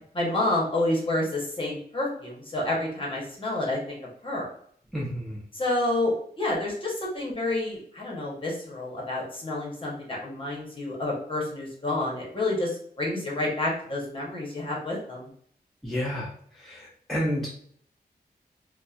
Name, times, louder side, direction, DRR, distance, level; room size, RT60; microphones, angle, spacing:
voice 1, 0.1-4.0 4.2-4.5 5.5-15.3, left 2 dB, 30° left, -3 dB, 0.9 m, -29 dB
voice 2, 4.9-5.4 15.8-16.3 16.6-17.5, equal, ahead, -5 dB, 0.5 m, -30 dB
2.8 x 2.1 x 2.3 m, 0.63 s
wide cardioid pair, 105°, 17 cm